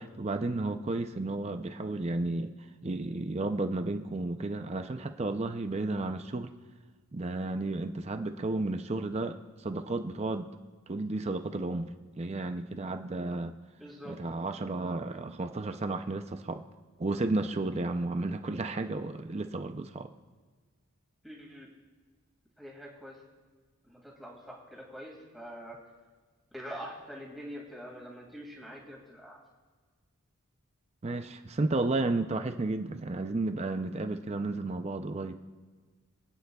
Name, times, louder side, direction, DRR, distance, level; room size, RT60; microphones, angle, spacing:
voice 1, 0.0-2.5 2.8-6.5 7.1-10.5 10.9-13.5 14.1-16.6 17.0-20.1 31.0-35.4, right 2 dB, 30° right, 7 dB, 0.5 m, -32 dB
voice 2, 13.8-14.2 21.2-21.7 22.6-23.2 23.9-25.8 26.5-29.4, equal, ahead, -4 dB, 2.1 m, -44 dB
27.0 x 9.2 x 2.3 m, 1.4 s
head